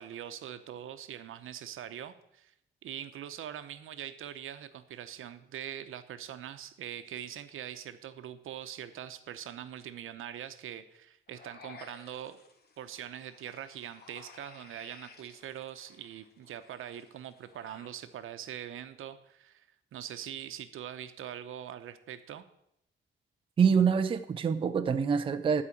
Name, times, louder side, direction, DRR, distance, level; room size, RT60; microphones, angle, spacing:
voice 1, 0.0-2.5 2.8-12.4 12.8-19.7 19.9-22.4, right 10 dB, 80° right, 0.8 m, -43 dB
sound 1, 11.3-17.9, left 4 dB, 50° left, 1.3 m, -55 dB
voice 2, 23.6-25.6, right 6 dB, 25° right, 0.4 m, -25 dB
11.5 x 4.9 x 8.5 m
wide cardioid pair, 175°, 21 cm